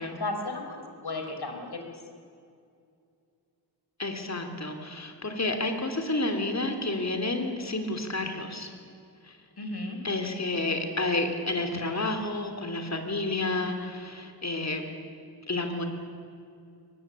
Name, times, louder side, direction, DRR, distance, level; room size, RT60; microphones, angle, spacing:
voice 1, 0.0-1.8 9.6-10.0, left 2 dB, 70° left, 4 dB, 4.1 m, -34 dB
voice 2, 4.0-8.7 10.0-14.8 15.5-15.8, left 2 dB, 40° left, 5 dB, 3.2 m, -30 dB
23.0 x 20.5 x 8.8 m, 2.4 s
wide cardioid pair, 90°, 41 cm